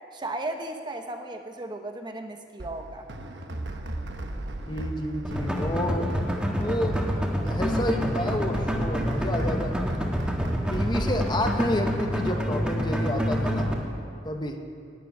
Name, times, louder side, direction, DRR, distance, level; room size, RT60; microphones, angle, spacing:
voice 1, 0.1-3.1, right 2 dB, 25° right, 5 dB, 0.8 m, -35 dB
sound 1, 2.6-11.3, right 1 dB, 70° right, 1.1 m, -36 dB
voice 2, 4.7-6.1 6.6-7.0 7.4-9.9 10.7-13.7 14.2-14.6, left 1 dB, 25° left, 4 dB, 1.1 m, -30 dB
sound 2, 5.2-13.7, equal, 5° right, 1.6 m, -27 dB
12.0 x 9.8 x 9.3 m, 2.4 s
head